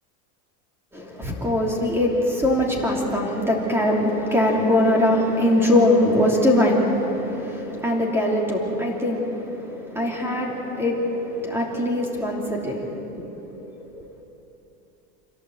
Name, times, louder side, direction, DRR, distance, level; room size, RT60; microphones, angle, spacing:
voice 1, 0.9-13.7 13.9-14.1, left 1 dB, 5° right, -1 dB, 2.9 m, -22 dB
27.0 x 17.0 x 7.9 m, 2.9 s
supercardioid pair, 175°, 43 cm